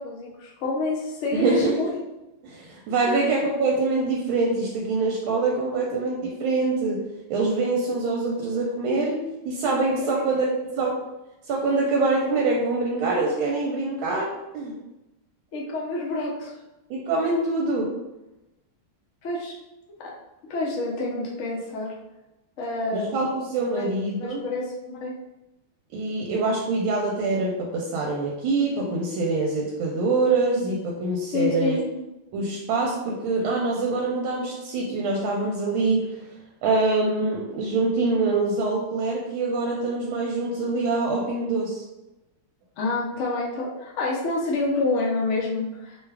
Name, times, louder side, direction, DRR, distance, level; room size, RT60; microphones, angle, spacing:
voice 1, 0.0-1.9 3.0-3.2 10.0-10.2 15.5-16.6 19.2-19.6 20.0-20.1 20.5-21.9 22.6-23.3 23.7-23.8 24.1-25.1 31.3-32.0 42.8-46.0, left 2 dB, 75° left, -3 dB, 0.6 m, -28 dB
voice 2, 1.3-2.0 2.4-10.5 10.7-11.0 11.4-14.8 16.9-18.0 22.9-24.5 25.9-31.8 32.3-41.8, right 3 dB, 80° right, -1 dB, 1.3 m, -25 dB
3.3 x 2.3 x 3.3 m, 0.97 s
omnidirectional pair, 2.3 m